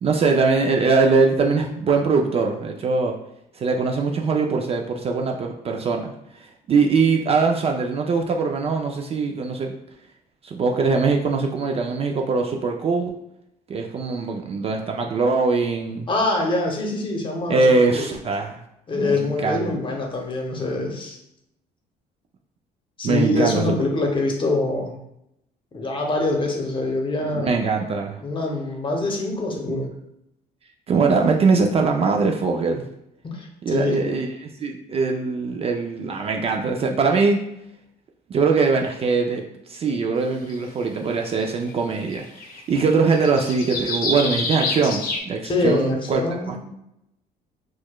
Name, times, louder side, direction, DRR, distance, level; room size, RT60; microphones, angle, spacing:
voice 1, 0.0-3.1 3.6-6.1 6.7-9.7 10.4-13.1 13.7-16.1 17.5-18.6 18.9-19.7 23.0-23.8 27.3-28.2 29.7-29.9 30.9-32.8 33.6-37.4 38.3-39.4 39.7-46.2 46.5-46.6, right 4 dB, 35° right, 2 dB, 0.4 m, -22 dB
voice 2, 16.1-18.1 18.9-21.2 23.0-25.0 25.7-27.6 28.2-29.9 33.4-34.0 45.4-46.6, left 2 dB, 30° left, 1 dB, 0.8 m, -24 dB
sound 1, 40.5-40.6 41.7-41.8 42.0-45.2, left 3 dB, 60° left, 0.7 m, -28 dB
4.6 x 2.2 x 2.2 m, 0.81 s
cardioid pair, 110°, 17 cm